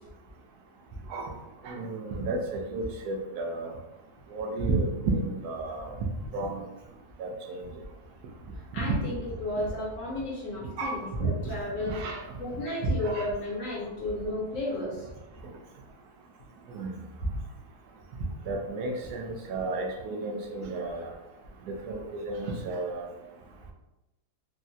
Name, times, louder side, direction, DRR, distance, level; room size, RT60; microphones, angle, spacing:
voice 1, 1.6-3.7 4.3-6.0 6.3-6.6 7.2-7.7 8.9-9.0 10.8-10.9 11.9-12.2 12.8-13.3 16.7-16.9 18.5-21.1 21.7-23.1, right 2 dB, 80° right, 1 dB, 1.1 m, -32 dB
voice 2, 8.7-12.0 12.3-15.1, left 1 dB, 65° left, -5 dB, 1.0 m, -33 dB
3.7 x 2.1 x 2.6 m, 1.0 s
omnidirectional pair, 1.6 m